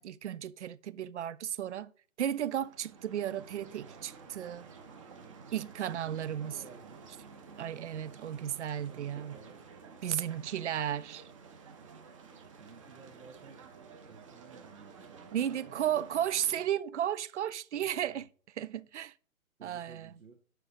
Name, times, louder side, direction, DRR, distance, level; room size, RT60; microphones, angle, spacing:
voice 1, 0.0-1.9 2.2-4.7 5.5-6.6 7.6-9.4 10.0-11.2 15.3-18.2 18.6-19.1 19.6-20.1, right 10 dB, 55° right, 0.5 m, -34 dB
sound 1, 2.4-16.6, right 5 dB, 25° right, 0.8 m, -52 dB
voice 2, 6.0-7.1 8.3-9.6 10.0-10.6 12.6-16.0 17.7-18.2 19.6-20.4, right 4 dB, 80° right, 1.5 m, -56 dB
6.7 x 6.6 x 3.8 m
hypercardioid pair, 150°, 42 cm